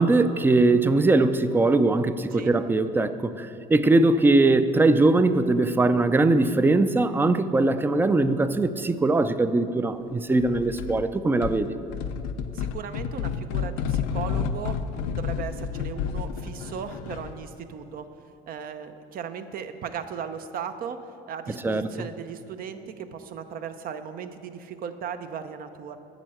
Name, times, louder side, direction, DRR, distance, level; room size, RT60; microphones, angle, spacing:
voice 1, 0.0-11.7 21.6-22.0, right 2 dB, 10° right, 12 dB, 0.4 m, -21 dB
sound 1, 10.4-11.1 11.4-17.4, left 7 dB, 85° left, 0.5 m, -30 dB
voice 2, 12.5-18.1 18.5-21.0 21.3-26.0, right 7 dB, 55° right, 9 dB, 0.7 m, -37 dB
9.0 x 6.3 x 7.7 m, 2.9 s
supercardioid pair, 95°, 18 cm